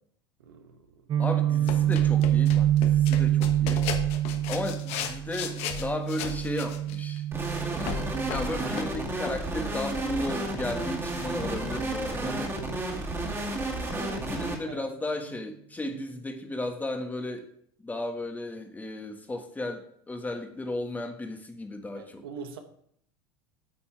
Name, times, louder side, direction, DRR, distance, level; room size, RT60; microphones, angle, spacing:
voice 1, 0.4-1.0 14.0-14.8 22.0-22.6, right 6 dB, 90° right, 6 dB, 1.3 m, -44 dB
Guitar, 1.1-8.9, right 12 dB, 40° right, 0.8 m, -26 dB
voice 2, 1.2-3.9 4.5-12.4 14.3-17.5 17.8-22.2, left 1 dB, 15° left, 5 dB, 1.5 m, -35 dB
sound 1, 1.7-7.2 7.9-9.0 9.2-9.4 9.7-9.9 10.2-10.3, left 7 dB, 60° left, 1.3 m, -36 dB
sound 2, 7.3-14.5, right 2 dB, 20° right, 2.4 m, -32 dB
9.0 x 7.0 x 4.7 m, 0.67 s
supercardioid pair, 100°, 12 cm